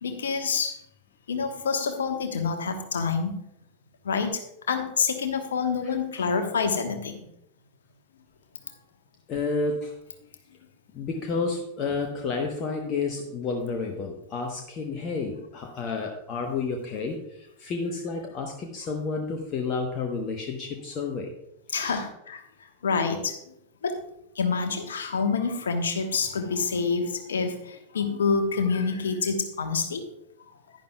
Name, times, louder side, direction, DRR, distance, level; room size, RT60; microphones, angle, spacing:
voice 1, 0.0-0.8 1.3-3.4 4.0-7.2 21.7-22.4 22.8-23.5 23.8-24.0 24.3-30.0, left 5 dB, 65° left, 6 dB, 1.1 m, -27 dB
voice 2, 5.8-6.3 9.3-9.9 10.9-21.3 21.7-22.0, left 4 dB, 35° left, 2 dB, 1.0 m, -31 dB
10.5 x 10.5 x 2.3 m, 0.78 s
figure-of-eight pair, 90°, 0 cm